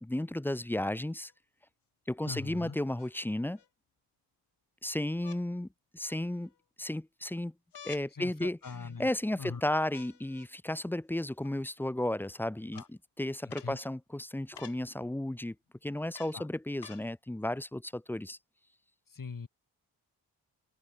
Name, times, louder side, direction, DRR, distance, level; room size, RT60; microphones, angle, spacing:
voice 1, 0.0-1.3 2.1-3.6 4.8-5.7 5.9-6.5 6.8-7.5 7.8-8.6 9.0-15.5 15.8-18.4, left 1 dB, 5° left, 0.6 m, -33 dB
sound 1, 1.2-1.3 3.0-3.7 5.2-5.4 6.1-6.6 7.7-8.1 8.6-9.2 9.9-10.5 11.4-11.5 12.7-12.9 13.5-13.7 14.5-14.8 16.1-16.4 16.8-17.1 17.9-18.0, left 8 dB, 65° left, 5.0 m, -51 dB
voice 2, 2.2-2.8 8.1-9.1 9.4-9.6 12.7-12.9 13.6-13.8 16.3-16.5 19.1-19.5, left 5 dB, 45° left, 7.2 m, -41 dB
supercardioid pair, 45°, 44 cm